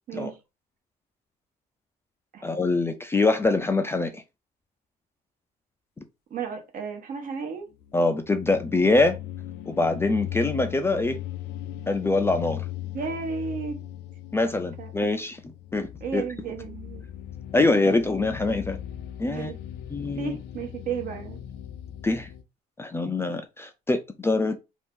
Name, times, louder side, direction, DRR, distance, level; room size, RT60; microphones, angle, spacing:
voice 1, 0.1-0.4 2.3-2.5 6.3-7.7 12.9-13.8 14.8-14.9 16.0-17.0 19.3-19.6 20.2-21.4, right 6 dB, 55° right, 1.0 m, -33 dB
voice 2, 2.4-4.2 7.9-9.2 9.7-11.2 11.9-12.6 14.3-15.4 15.7-16.2 17.5-18.8 19.2-19.5 19.9-20.4 22.0-22.3 22.8-24.6, left 3 dB, 15° left, 0.4 m, -24 dB
sound 1, 7.7-22.4, left 12 dB, 80° left, 0.4 m, -38 dB
2.7 x 2.5 x 3.5 m
cardioid pair, 110°, 17 cm